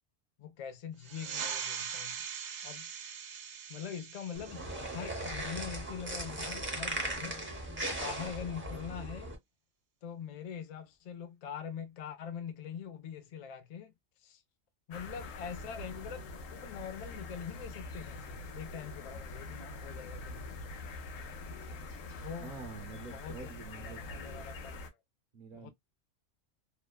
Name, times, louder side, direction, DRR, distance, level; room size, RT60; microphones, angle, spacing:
voice 1, 0.4-2.3 2.6-2.9 3.7-7.4 7.9-9.3 10.0-13.9 14.2-14.4 14.9-20.7 22.1-22.5 23.1-23.5 23.8-24.8 25.5-25.7, left 8 dB, 70° left, 0.3 m, -43 dB
sound 1, 1.0-6.1, right 7 dB, 85° right, 1.0 m, -42 dB
sound 2, 4.3-9.4, right 1 dB, 15° right, 0.6 m, -38 dB
sound 3, 14.9-24.9, left 2 dB, 90° left, 1.0 m, -44 dB
voice 2, 22.4-24.5 25.3-25.7, right 4 dB, 55° right, 0.7 m, -47 dB
2.9 x 2.2 x 2.2 m
omnidirectional pair, 1.3 m